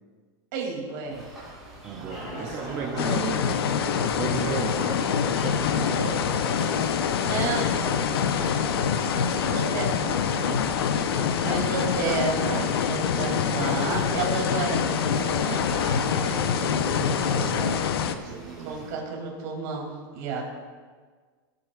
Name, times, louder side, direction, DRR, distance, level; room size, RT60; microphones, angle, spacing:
voice 1, 0.5-1.2 1.9-3.2 7.2-8.8 9.3-10.1 10.4-10.6 10.8-16.5 16.8-17.7 18.6-20.4, right 4 dB, 45° right, -1 dB, 2.7 m, -33 dB
sound 1, 1.1-18.9, right 1 dB, 5° right, 3.5 m, -46 dB
voice 2, 1.8-7.1 17.4-18.8, right 7 dB, 20° right, 2 dB, 0.5 m, -35 dB
sound 2, 2.1-17.7, left 1 dB, 45° left, 2.8 m, -37 dB
sound 3, 3.0-18.2, left 8 dB, 85° left, 0.7 m, -25 dB
19.0 x 8.2 x 2.4 m, 1.5 s
supercardioid pair, 175°, 13 cm